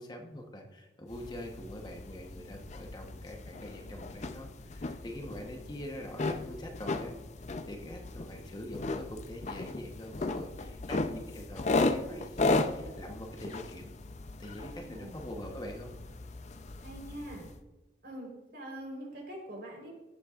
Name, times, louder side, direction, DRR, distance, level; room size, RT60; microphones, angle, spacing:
voice 1, 0.0-7.1 7.5-13.9 14.4-15.9, equal, 25° left, 2 dB, 1.1 m, -44 dB
sound 1, 1.1-17.6, left 2 dB, 40° left, 0.6 m, -36 dB
voice 2, 14.6-15.2 16.8-17.5 18.0-19.9, right 1 dB, 60° right, -1 dB, 4.0 m, -44 dB
18.0 x 7.8 x 2.5 m, 1.1 s
head